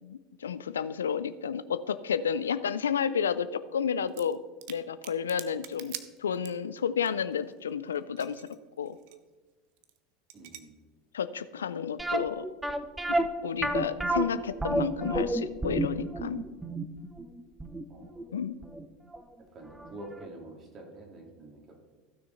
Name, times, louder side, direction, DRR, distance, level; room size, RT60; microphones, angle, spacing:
voice 1, 0.0-4.4 4.7-9.0 11.1-12.5 13.1-16.5 18.3-18.6, left 7 dB, 80° left, 15 dB, 0.4 m, -31 dB
sound 1, 4.1-4.4 4.6-6.8 7.1-7.2 7.3-8.6 8.8-9.2 9.8-10.0 10.3-10.6, right 13 dB, 60° right, 0.7 m, -43 dB
voice 2, 10.3-10.8 17.9-18.1 19.5-21.7, right 2 dB, 40° right, 0 dB, 3.1 m, -46 dB
sound 2, 12.0-18.9 19.1-19.2 19.8-19.9 20.2-20.3, right 1 dB, 10° right, 0.8 m, -30 dB
15.0 x 6.4 x 4.1 m, 1.3 s
hypercardioid pair, 80°, 0 cm